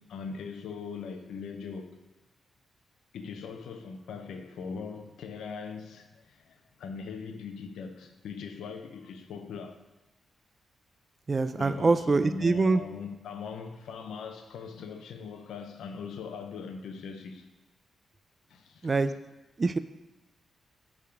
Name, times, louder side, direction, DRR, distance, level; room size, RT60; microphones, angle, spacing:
voice 1, 0.0-2.0 3.1-9.8 11.5-17.5 18.5-19.2, left 5 dB, 85° left, 0.6 m, -41 dB
voice 2, 11.3-12.8 18.8-19.1 19.6-19.8, right 3 dB, 35° right, 0.4 m, -24 dB
6.7 x 3.6 x 5.0 m
cardioid pair, 70°, 0 cm